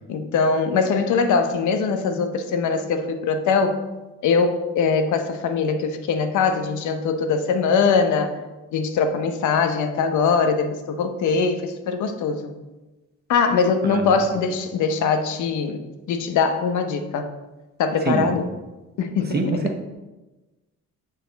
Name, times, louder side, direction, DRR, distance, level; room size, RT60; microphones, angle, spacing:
voice 1, 0.1-3.8 4.2-8.3 8.7-12.5 13.3-15.8 16.1-17.3 17.8-18.5 19.0-19.4, left 5 dB, 75° left, 7 dB, 0.8 m, -22 dB
voice 2, 19.3-19.8, right 3 dB, 35° right, 4 dB, 1.1 m, -24 dB
9.2 x 4.2 x 4.0 m, 1.1 s
cardioid pair, 90°, 30 cm